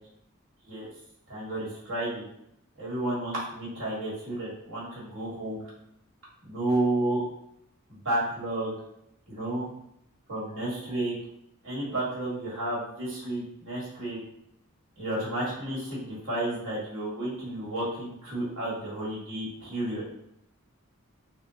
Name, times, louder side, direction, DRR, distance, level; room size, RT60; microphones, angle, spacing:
voice 1, 1.3-2.3 2.8-5.7 6.4-7.2 7.9-8.7 9.3-9.7 10.3-11.1 11.6-14.2 15.0-20.0, right 1 dB, 65° right, -6 dB, 1.5 m, -31 dB
3.6 x 2.2 x 2.7 m, 0.78 s
head